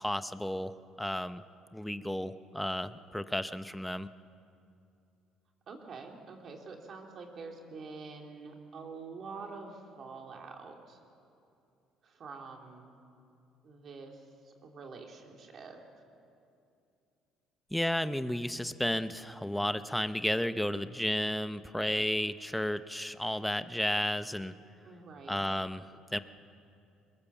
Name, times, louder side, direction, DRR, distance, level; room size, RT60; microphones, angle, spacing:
voice 1, 0.0-1.4 1.7-4.1 17.7-24.6 25.3-26.2, left 1 dB, 5° left, 12 dB, 0.8 m, -33 dB
voice 2, 5.7-11.0 12.0-12.9 13.6-15.8 24.8-25.4, right 4 dB, 50° right, 2 dB, 3.3 m, -46 dB
22.5 x 21.0 x 7.3 m, 2.6 s
supercardioid pair, 90°, 0 cm